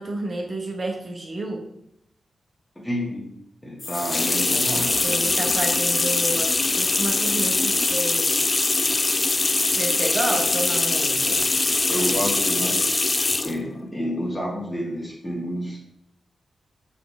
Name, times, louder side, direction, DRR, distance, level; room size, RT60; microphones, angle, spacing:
voice 1, 0.0-1.7 5.0-6.5 6.8-8.3 9.7-11.4, right 2 dB, 40° right, 0 dB, 1.1 m, -30 dB
voice 2, 2.7-3.3 3.6-4.9 11.9-12.9 13.4-15.8, equal, 15° left, -4 dB, 1.7 m, -29 dB
sound 1, 3.8-13.6, left 3 dB, 30° left, 0.4 m, -22 dB
6.5 x 4.5 x 3.4 m, 0.78 s
wide cardioid pair, 95°, 0 cm